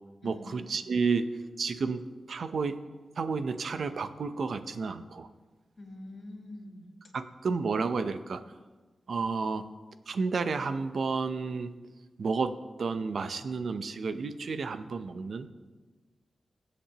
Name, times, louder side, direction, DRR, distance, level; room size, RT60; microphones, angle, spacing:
voice 1, 0.2-2.8 3.2-5.3 7.1-8.4 9.1-9.6 10.1-11.7 12.2-15.5, right 4 dB, 65° right, 11 dB, 0.7 m, -31 dB
voice 2, 5.8-6.9, left 1 dB, 35° left, -5 dB, 3.1 m, -44 dB
22.5 x 8.5 x 2.9 m, 1.3 s
wide cardioid pair, 120°, 0 cm